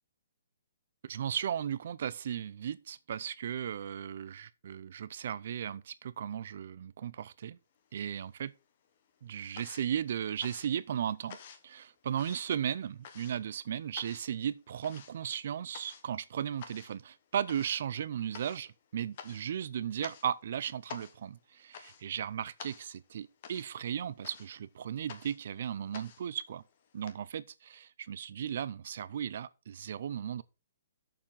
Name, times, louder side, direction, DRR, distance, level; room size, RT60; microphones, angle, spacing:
voice 1, 1.0-7.6 7.9-8.5 9.2-11.4 11.6-26.6 26.9-30.4, right 9 dB, 40° right, 0.5 m, -36 dB
sound 1, 7.8-8.6 8.9-27.1, left 7 dB, 30° left, 1.0 m, -51 dB
6.9 x 5.9 x 6.3 m
hypercardioid pair, 180°, 0 cm